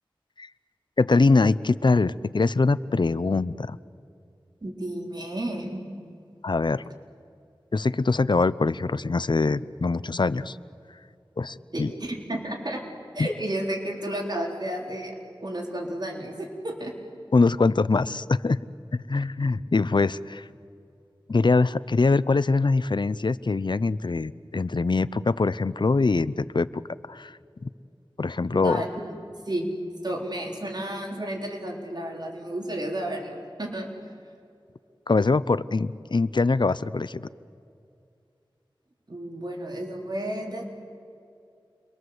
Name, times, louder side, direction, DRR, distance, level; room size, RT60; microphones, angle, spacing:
voice 1, 1.0-3.8 6.4-6.8 7.7-10.6 11.4-11.9 13.2-13.3 17.3-18.6 18.9-20.4 21.3-26.7 27.1-27.3 27.6-27.7 28.2-28.8 35.1-37.3, left 3 dB, 60° left, 17 dB, 0.6 m, -23 dB
voice 2, 4.6-5.8 11.7-12.8 13.1-15.1 15.4-16.9 28.5-29.1 29.5-29.7 30.0-33.9 39.1-40.6, right 1 dB, 50° right, 0 dB, 3.8 m, -32 dB
29.0 x 22.5 x 7.9 m, 2.5 s
wide cardioid pair, 60°, 9 cm